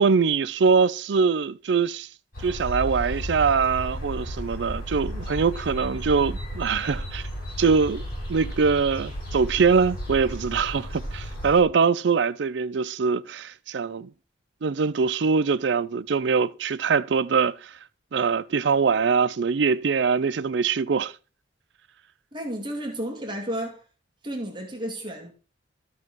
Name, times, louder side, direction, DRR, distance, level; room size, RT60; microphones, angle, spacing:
voice 1, 0.0-2.1 2.4-7.2 7.6-8.0 8.3-14.1 14.6-17.8 18.1-21.1, right 5 dB, 65° right, 0.4 m, -23 dB
sound 1, 2.3-11.6, equal, 50° left, 6.9 m, -34 dB
voice 2, 22.3-23.8 24.2-25.3, right 1 dB, 25° right, 2.2 m, -32 dB
13.5 x 4.7 x 6.1 m
head